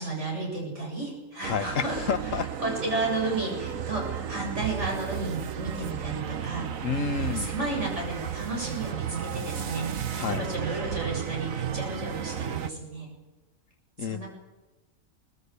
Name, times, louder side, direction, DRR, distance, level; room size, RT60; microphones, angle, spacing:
voice 1, 0.0-2.0 2.6-6.7 7.2-13.1 14.0-14.3, right 2 dB, 55° right, -1 dB, 7.8 m, -33 dB
voice 2, 1.4-2.5 6.8-7.5 10.1-10.5 14.0-14.2, left 6 dB, 70° left, 11 dB, 1.4 m, -30 dB
sound 1, 1.4-12.7, right 9 dB, 75° right, 1.4 m, -33 dB
23.5 x 18.0 x 8.3 m, 1.2 s
omnidirectional pair, 1.4 m